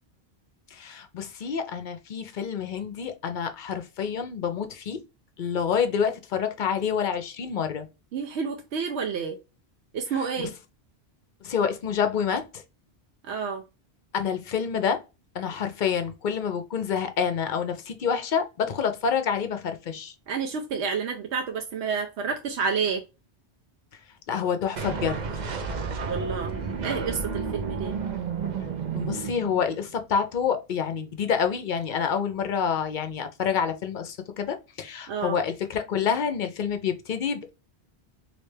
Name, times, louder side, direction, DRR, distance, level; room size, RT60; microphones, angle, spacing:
voice 1, 0.7-5.0 5.4-7.9 10.2-10.3 11.4-12.6 14.1-15.0 15.3-20.1 24.3-25.2 28.9-37.5, left 7 dB, 55° left, 0.7 m, -28 dB
voice 2, 8.1-9.4 9.9-10.5 13.2-13.6 20.3-23.0 26.1-26.5 26.8-27.9 35.1-35.4, right 5 dB, 85° right, 0.9 m, -29 dB
sound 1, 24.8-29.9, right 5 dB, 50° right, 0.6 m, -31 dB
3.2 x 2.8 x 3.1 m
omnidirectional pair, 1.1 m